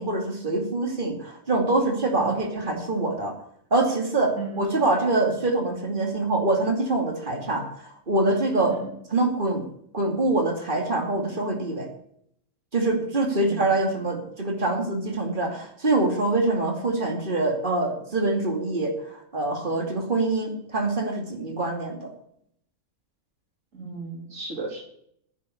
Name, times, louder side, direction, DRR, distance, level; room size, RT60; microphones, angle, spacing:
voice 1, 0.0-3.4 3.7-8.8 9.1-9.7 9.9-11.9 12.7-22.1, right 2 dB, 40° right, 2 dB, 2.8 m, -25 dB
voice 2, 8.6-8.9 13.4-13.9 23.7-24.8, right 4 dB, 70° right, 2 dB, 3.1 m, -35 dB
10.0 x 7.4 x 8.5 m, 0.70 s
omnidirectional pair, 1.4 m